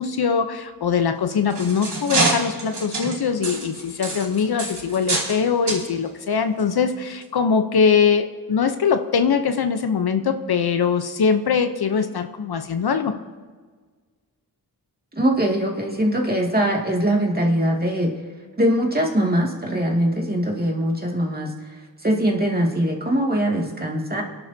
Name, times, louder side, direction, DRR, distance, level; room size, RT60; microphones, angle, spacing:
voice 1, 0.0-13.1, left 6 dB, 70° left, 8 dB, 0.8 m, -22 dB
sound 1, 1.1-5.4 5.7-5.8 6.6-6.7 7.2-7.3, right 3 dB, 85° right, 2.9 m, -26 dB
voice 2, 15.1-18.1 18.6-21.5 22.0-24.2, right 1 dB, 25° right, 0 dB, 2.2 m, -22 dB
24.0 x 11.0 x 2.8 m, 1.5 s
cardioid pair, 65°, 39 cm